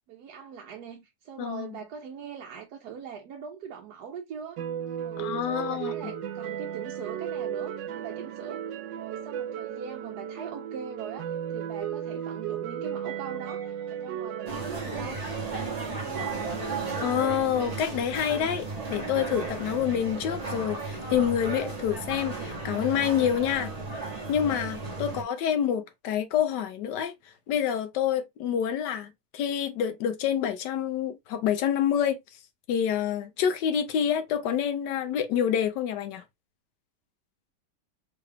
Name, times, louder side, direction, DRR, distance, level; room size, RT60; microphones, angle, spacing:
voice 1, 0.1-4.6 5.0-8.6 9.0-16.6 23.6-23.9 25.5-25.6, right 7 dB, 70° right, 1.1 m, -42 dB
voice 2, 1.4-1.7 5.2-5.9 17.0-23.7 24.3-27.1 27.5-32.2 32.7-36.2, left 9 dB, 80° left, 1.2 m, -27 dB
sound 1, 4.6-17.8, right 9 dB, 85° right, 1.3 m, -35 dB
sound 2, 14.5-25.2, right 3 dB, 30° right, 0.8 m, -35 dB
3.7 x 2.3 x 3.3 m
omnidirectional pair, 1.9 m